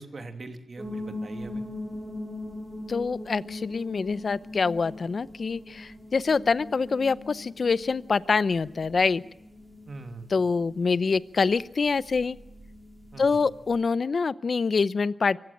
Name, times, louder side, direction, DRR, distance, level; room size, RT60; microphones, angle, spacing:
voice 1, 0.0-1.6 9.9-10.3 13.1-13.5, right 3 dB, 50° right, 6 dB, 2.7 m, -42 dB
sound 1, 0.8-13.8, left 2 dB, 25° right, 4.1 m, -41 dB
voice 2, 2.9-9.2 10.3-12.4 13.2-15.4, left 4 dB, 55° left, 17 dB, 0.7 m, -25 dB
24.5 x 15.5 x 7.3 m, 0.91 s
wide cardioid pair, 95°, 0 cm